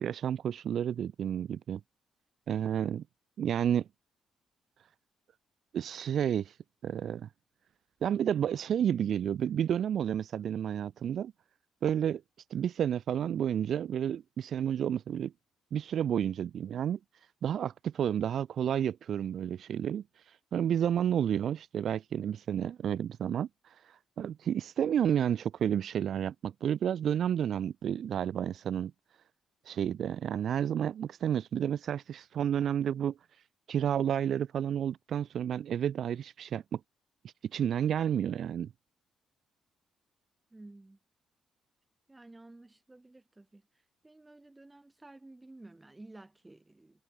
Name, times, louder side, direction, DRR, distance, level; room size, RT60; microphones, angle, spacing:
voice 1, 0.0-1.8 2.5-3.0 3.4-3.9 5.7-6.6 6.8-7.3 8.0-11.3 11.8-12.2 12.5-15.3 15.7-17.0 17.4-28.9 29.6-33.2 33.7-36.8 37.5-38.7, right 9 dB, 65° right, 0.9 m, -31 dB
voice 2, 40.5-41.0 42.1-43.6 44.0-47.0, right 2 dB, 15° right, 3.8 m, -53 dB
cardioid pair, 90°, 0 cm